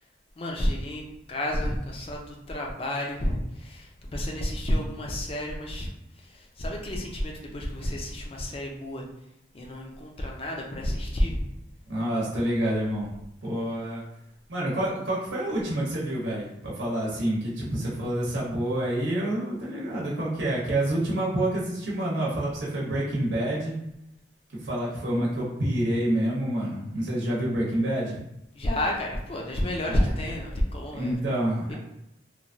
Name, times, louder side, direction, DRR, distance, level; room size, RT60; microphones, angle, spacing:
voice 1, 0.4-5.9 6.2-9.0 9.5-11.4 28.6-31.2 31.7-31.8, left 1 dB, 30° left, 0 dB, 0.4 m, -30 dB
voice 2, 11.9-13.1 13.4-14.0 14.5-23.7 24.6-28.2 29.9-30.1 30.9-31.8, right 1 dB, 85° right, -6 dB, 0.8 m, -28 dB
3.0 x 2.2 x 2.6 m, 0.82 s
head